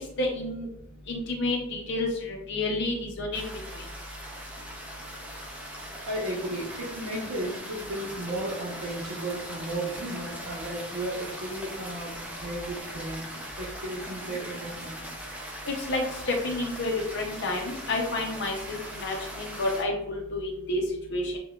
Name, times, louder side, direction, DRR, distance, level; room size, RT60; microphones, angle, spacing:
voice 1, 0.0-0.7 1.1-3.4 15.7-20.8 21.1-21.3, left 2 dB, 50° left, 1 dB, 0.5 m, -30 dB
sound 1, 3.3-19.8, equal, 5° right, 0.4 m, -40 dB
voice 2, 6.0-13.2 13.6-15.1 19.1-19.2, right 1 dB, 75° right, -4 dB, 0.7 m, -34 dB
5.5 x 2.2 x 2.2 m, 0.79 s
head